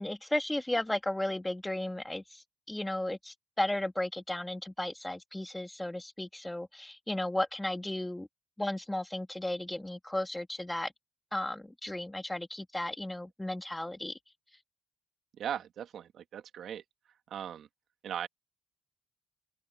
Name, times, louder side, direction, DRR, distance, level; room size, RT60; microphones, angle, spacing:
voice 1, 0.0-8.3 8.6-10.9 11.3-14.2, left 1 dB, 10° left, 2.0 m, -34 dB
voice 2, 15.4-16.8 17.3-17.7 18.0-18.3, right 9 dB, 70° right, 1.9 m, -38 dB
open air
cardioid pair, 90°, 0 cm